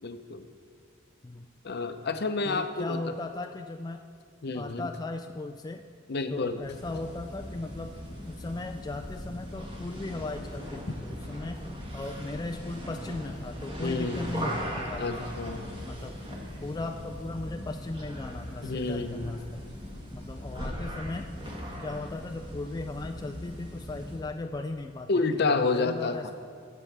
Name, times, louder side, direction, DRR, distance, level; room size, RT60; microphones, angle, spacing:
voice 1, 0.0-0.5 1.6-3.0 4.4-4.9 6.1-6.6 13.8-14.4 15.0-15.7 18.6-19.4 25.1-26.3, left 3 dB, 55° left, 8 dB, 0.7 m, -29 dB
voice 2, 2.4-4.0 4.5-5.8 6.3-7.9 8.3-11.6 11.9-15.4 15.9-16.2 16.6-19.7 20.1-21.3 21.8-26.3, left 2 dB, 20° left, 4 dB, 0.3 m, -37 dB
sound 1, 6.6-24.3, equal, 25° right, 1.5 m, -39 dB
20.0 x 7.7 x 3.3 m, 2.2 s
head